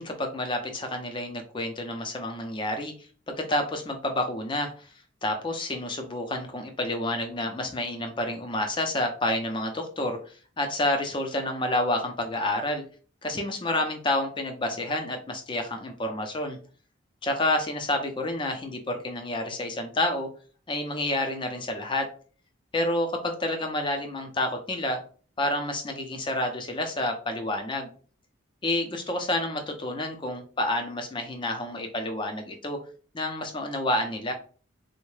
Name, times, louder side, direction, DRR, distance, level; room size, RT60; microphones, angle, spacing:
voice 1, 0.0-2.9 3.3-4.9 5.2-12.8 13.2-16.6 17.2-20.3 20.7-22.1 22.7-25.0 25.4-27.9 28.6-32.8 33.1-34.3, left 1 dB, 25° left, 5 dB, 0.5 m, -29 dB
3.6 x 2.1 x 3.1 m, 0.41 s
head